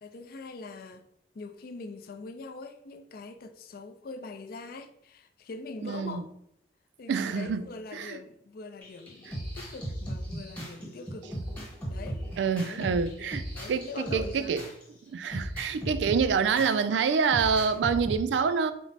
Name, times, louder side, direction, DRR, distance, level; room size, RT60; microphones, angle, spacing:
voice 1, 0.0-1.0 1.3-6.3 7.0-11.3 11.9-12.3 12.6-14.5, left 3 dB, 55° left, 0.4 m, -43 dB
voice 2, 5.8-6.2 7.1-8.2 12.4-13.4 13.7-14.6 15.1-18.7, right 6 dB, 85° right, 0.3 m, -27 dB
sound 1, 8.8-14.8 15.3-16.7 17.3-18.2, right 1 dB, 10° left, 1.1 m, -37 dB
4.5 x 2.1 x 4.0 m
head